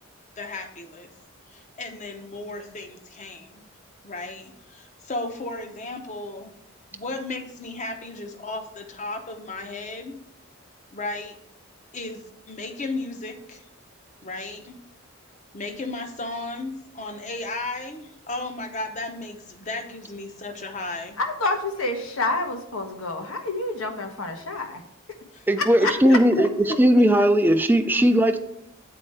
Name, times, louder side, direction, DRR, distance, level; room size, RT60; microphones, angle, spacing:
voice 1, 0.4-1.1 1.5-3.7 4.0-6.6 6.9-10.2 10.9-11.3 11.9-12.2 12.5-13.6 14.2-14.8 15.5-21.2 25.3-25.4 25.8-27.0, left 2 dB, 35° left, 6 dB, 0.8 m, -34 dB
voice 2, 21.2-24.8 25.6-25.9, left 2 dB, 80° left, 5 dB, 1.1 m, -28 dB
voice 3, 25.5-28.4, equal, 10° right, 8 dB, 0.4 m, -18 dB
7.8 x 4.3 x 4.7 m, 0.77 s
head